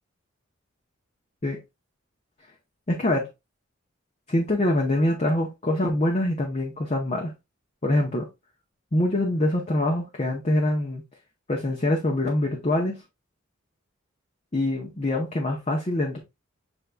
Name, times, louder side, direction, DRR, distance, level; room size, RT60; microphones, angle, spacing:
voice 1, 2.9-3.2 4.3-7.3 7.8-8.3 8.9-11.0 11.5-13.0 14.5-16.2, left 1 dB, 30° left, 0.7 m, -24 dB
6.7 x 3.6 x 2.2 m
head